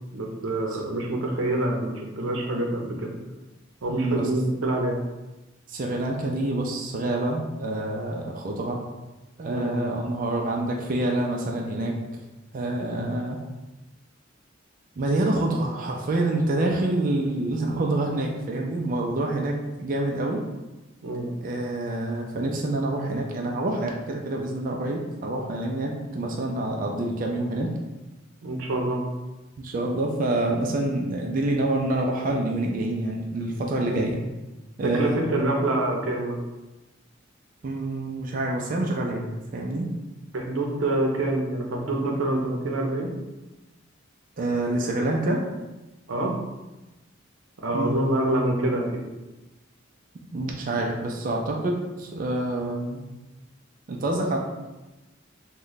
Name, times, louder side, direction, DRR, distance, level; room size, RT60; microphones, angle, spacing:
voice 1, 0.1-3.1 3.8-5.0 9.5-9.7 21.0-21.3 28.4-29.0 33.9-34.1 34.8-36.4 40.3-43.1 46.1-46.3 47.6-49.0, right 1 dB, 90° right, 1 dB, 0.6 m, -26 dB
voice 2, 3.9-4.3 5.7-8.8 9.4-11.9 12.5-13.4 15.0-20.4 21.4-27.7 29.6-34.2 34.8-35.2 37.6-39.3 39.5-39.9 44.4-45.4 47.7-48.2 50.3-53.0 53.9-54.4, right 2 dB, 45° right, 0 dB, 0.4 m, -27 dB
3.0 x 2.2 x 3.9 m, 1.1 s
head